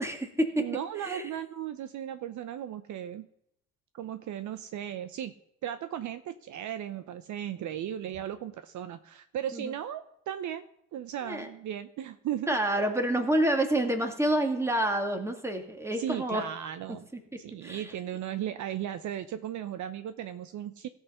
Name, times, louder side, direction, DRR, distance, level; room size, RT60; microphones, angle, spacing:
voice 1, 0.0-0.7 1.0-1.2 9.5-9.7 11.2-11.5 12.5-16.4 17.6-17.8, right 1 dB, 5° right, 4 dB, 2.4 m, -28 dB
voice 2, 0.6-3.3 3.9-5.3 5.6-10.6 10.9-12.6 15.9-17.1 17.4-20.9, right 10 dB, 50° right, 12 dB, 0.8 m, -36 dB
17.0 x 5.7 x 5.7 m, 0.77 s
hypercardioid pair, 60°, 37 cm